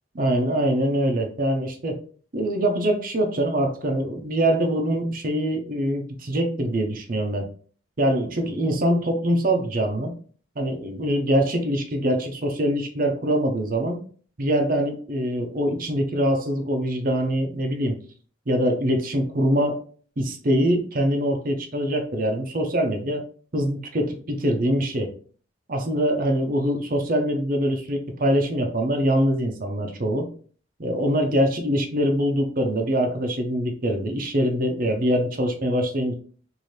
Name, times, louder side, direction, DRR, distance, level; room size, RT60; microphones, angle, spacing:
voice 1, 0.1-2.0 2.3-7.4 8.0-10.1 10.6-14.0 14.4-17.9 18.5-19.8 20.2-23.2 23.5-25.1 25.7-30.3 30.8-36.1, equal, 50° right, 3 dB, 0.7 m, -23 dB
3.2 x 2.7 x 4.1 m, 0.43 s
head